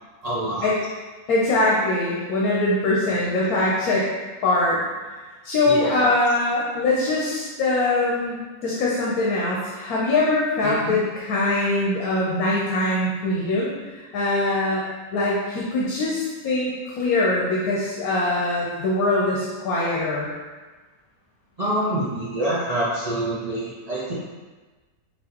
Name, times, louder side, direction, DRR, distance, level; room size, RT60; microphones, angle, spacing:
voice 1, 0.2-0.7 3.1-3.2 5.7-6.0 10.6-10.9 21.6-24.1, right 1 dB, 55° right, -8 dB, 0.4 m, -26 dB
voice 2, 1.3-4.1 4.4-4.8 5.4-8.4 8.6-14.8 15.1-20.3, left 2 dB, 90° left, -5 dB, 1.2 m, -22 dB
5.6 x 2.6 x 2.9 m, 1.3 s
omnidirectional pair, 1.5 m